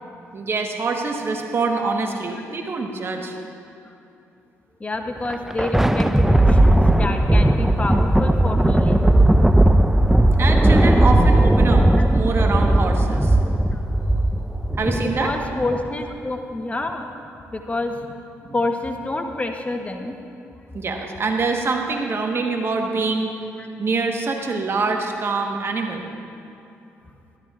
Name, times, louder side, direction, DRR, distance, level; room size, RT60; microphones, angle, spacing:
voice 1, 0.3-3.4 10.4-11.9 12.1-13.4 14.8-15.3 18.4-18.5 20.7-23.3 23.8-26.1, right 3 dB, 45° right, 3 dB, 1.2 m, -25 dB
voice 2, 4.8-9.1 13.7-13.8 14.8-17.1 17.5-17.9 18.5-20.1 23.6-23.7, left 2 dB, 25° left, 4 dB, 0.9 m, -28 dB
Thunder, 5.2-15.9, right 1 dB, 5° right, 0.4 m, -17 dB
13.0 x 12.5 x 2.4 m, 2.8 s
supercardioid pair, 60°, 6 cm